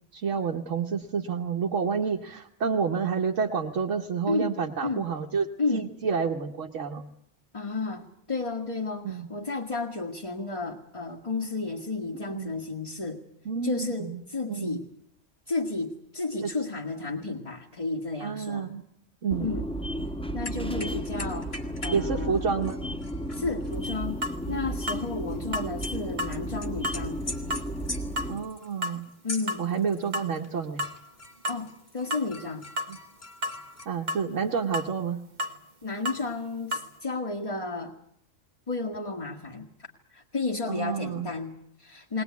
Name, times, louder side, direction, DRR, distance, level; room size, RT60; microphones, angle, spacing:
voice 1, 0.1-7.0 9.0-9.3 12.3-12.5 13.4-14.2 14.5-14.8 16.4-16.5 18.2-18.8 19.2-19.5 21.9-22.8 25.5-25.7 28.3-29.1 29.6-30.8 32.9-33.0 33.8-35.3 40.7-41.3, right 6 dB, 85° right, 0 dB, 1.5 m, -29 dB
voice 2, 4.3-5.1 5.6-5.9 7.5-13.2 13.6-14.9 15.5-18.7 19.4-19.7 20.3-21.5 21.8-22.5 23.3-27.2 29.2-29.7 31.5-32.7 35.8-38.0 38.7-39.7 40.1-42.2, left 3 dB, 30° left, -1 dB, 1.7 m, -32 dB
sound 1, 19.3-28.4, right 1 dB, 5° left, 1.6 m, -33 dB
sound 2, 20.4-22.0 22.3-26.0 26.3-30.5 30.8-33.9, left 2 dB, 55° left, 2.6 m, -43 dB
sound 3, 23.7-23.8 24.2-24.4 24.9-25.1 25.5-25.7 26.2-26.4 26.8-27.0 27.5-27.7 28.2-28.3 28.8-29.0 29.5-29.7 30.1-30.3 30.8-31.0 31.4-31.6 32.1-32.3 32.8-32.9 33.4-33.6 34.1-34.2 34.7-34.9 35.4-35.6 36.1-36.2 36.7-36.9, left 1 dB, 40° right, 1.5 m, -31 dB
20.5 x 20.0 x 9.4 m, 0.71 s
omnidirectional pair, 1.3 m